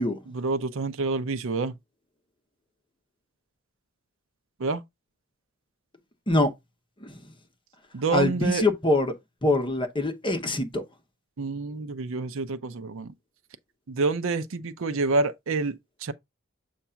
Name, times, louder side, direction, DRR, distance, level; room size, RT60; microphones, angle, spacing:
voice 1, 0.3-1.8 4.6-4.8 7.9-8.7 11.4-13.1 13.9-16.1, right 3 dB, 65° right, 0.6 m, -28 dB
voice 2, 8.1-9.1 9.4-10.8, left 2 dB, 25° left, 1.0 m, -24 dB
7.1 x 2.5 x 5.6 m
head